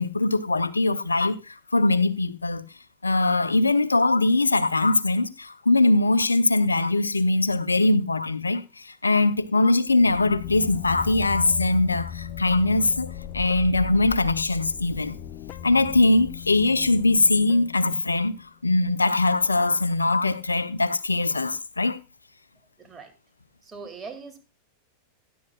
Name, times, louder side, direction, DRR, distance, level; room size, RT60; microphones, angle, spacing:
voice 1, 0.0-2.6 3.0-15.2 15.6-22.0, left 2 dB, 80° left, 0.7 m, -22 dB
sound 1, 9.9-18.5, left 10 dB, 35° left, 0.7 m, -37 dB
voice 2, 22.8-23.1 23.6-24.4, right 5 dB, 15° right, 2.4 m, -40 dB
18.0 x 11.0 x 2.4 m
figure-of-eight pair, 90°, 0 cm